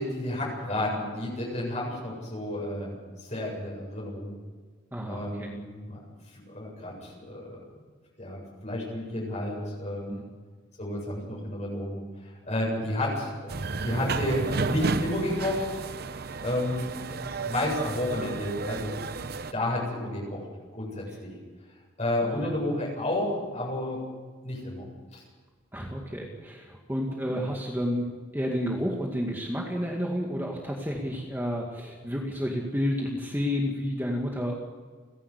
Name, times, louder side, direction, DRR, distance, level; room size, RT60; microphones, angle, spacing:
voice 1, 0.0-3.0 3.2-4.3 5.1-6.0 6.5-7.6 8.2-10.1 10.8-13.5 13.8-15.8 16.4-16.9 17.4-18.9 19.5-20.4 20.7-21.3 22.0-24.0 24.4-24.8 25.1-25.2 27.2-27.3, left 1 dB, 35° left, -3 dB, 7.9 m, -31 dB
voice 2, 4.9-5.5 10.1-10.3 21.1-21.2 22.2-22.5 25.7-28.1 28.3-34.5, equal, 10° right, -1 dB, 2.1 m, -30 dB
sound 1, 13.5-19.5, right 3 dB, 50° right, 0.8 m, -32 dB
30.0 x 11.5 x 8.4 m, 1.5 s
head